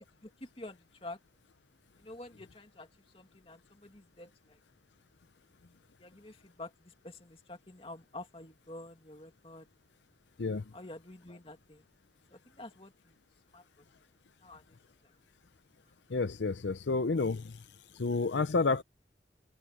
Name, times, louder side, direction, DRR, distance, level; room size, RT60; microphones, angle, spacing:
voice 1, 0.2-1.2 2.0-2.9 3.1-4.6 6.0-9.7 10.7-11.8 12.3-13.2 13.5-13.6 14.4-14.8 15.0-15.2, left 2 dB, 30° left, 2.4 m, -48 dB
voice 2, 16.1-17.6 17.9-18.8, left 3 dB, 85° left, 0.6 m, -30 dB
head